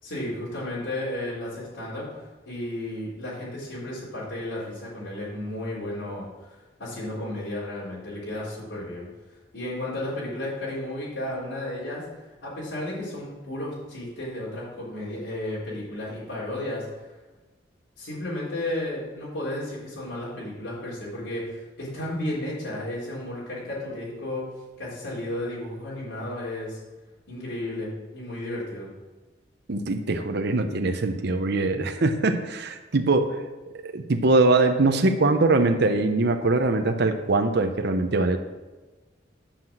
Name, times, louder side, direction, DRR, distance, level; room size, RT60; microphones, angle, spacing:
voice 1, 0.0-16.9 18.0-24.5 24.8-26.8 27.3-28.9, left 1 dB, 80° left, -7 dB, 4.1 m, -33 dB
voice 2, 29.7-33.4 33.8-38.4, right 2 dB, 60° right, 6 dB, 0.8 m, -22 dB
10.0 x 5.8 x 7.5 m, 1.2 s
head